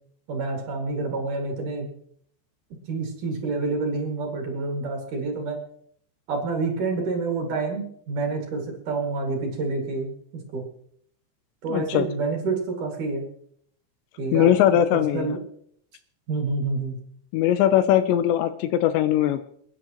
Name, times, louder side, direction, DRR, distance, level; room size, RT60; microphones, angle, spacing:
voice 1, 0.3-1.9 2.9-5.6 6.3-10.1 10.5-10.6 11.6-13.2 14.2-14.5 14.9-15.4 16.3-17.0, right 3 dB, 50° right, 1 dB, 3.2 m, -28 dB
voice 2, 11.7-12.1 14.3-15.4 17.3-19.4, left 11 dB, 80° left, 11 dB, 2.7 m, -20 dB
28.5 x 10.0 x 3.0 m, 0.66 s
omnidirectional pair, 5.4 m